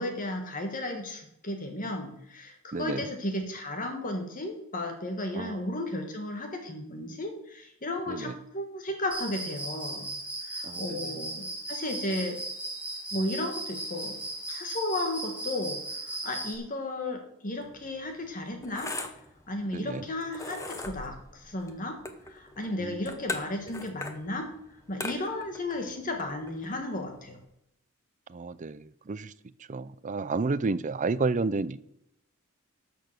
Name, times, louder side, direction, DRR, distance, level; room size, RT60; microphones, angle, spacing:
voice 1, 0.0-10.1 10.5-12.4 13.1-14.2 14.5-18.9 19.5-22.0 22.2-24.5 24.9-27.4, left 1 dB, 40° left, 1.6 m, -34 dB
voice 2, 2.7-3.1 5.3-5.7 8.1-8.3 10.6-11.0 19.7-20.1 22.8-23.0 28.3-29.3 29.7-31.8, right 3 dB, 35° right, 0.5 m, -31 dB
Cricket, 9.1-16.6, right 2 dB, 5° right, 2.3 m, -37 dB
sound 1, 17.6-27.4, left 2 dB, 15° left, 1.1 m, -41 dB
12.0 x 6.9 x 6.6 m
head